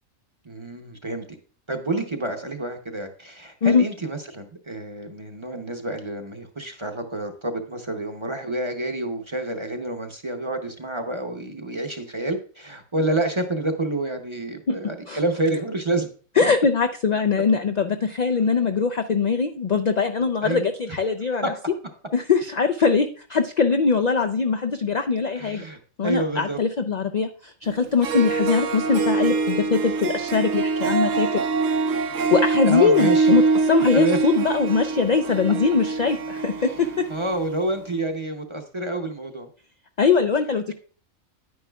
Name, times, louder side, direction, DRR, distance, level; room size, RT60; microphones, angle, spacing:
voice 1, 0.4-1.2 1.7-16.1 20.4-20.7 21.4-21.5 25.3-26.6 32.6-33.3 33.9-34.2 36.6-39.5, right 2 dB, 25° right, 5 dB, 0.7 m, -28 dB
voice 2, 16.4-21.4 22.1-25.6 26.0-31.4 32.3-37.1 40.0-40.7, left 5 dB, 65° left, 6 dB, 0.4 m, -21 dB
Harp, 27.7-27.8 28.0-37.5, right 4 dB, 75° right, 1.1 m, -24 dB
10.0 x 9.5 x 2.3 m, 0.41 s
omnidirectional pair, 1.4 m